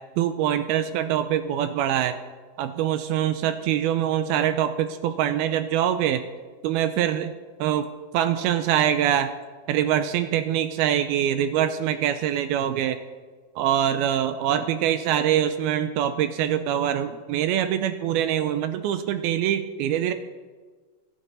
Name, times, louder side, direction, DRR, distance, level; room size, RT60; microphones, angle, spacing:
voice 1, 0.2-2.2 2.6-6.2 6.6-7.3 7.6-9.3 9.7-13.0 13.6-20.1, right 10 dB, 85° right, 10 dB, 2.3 m, -24 dB
24.0 x 9.9 x 4.0 m, 1.4 s
omnidirectional pair, 4.8 m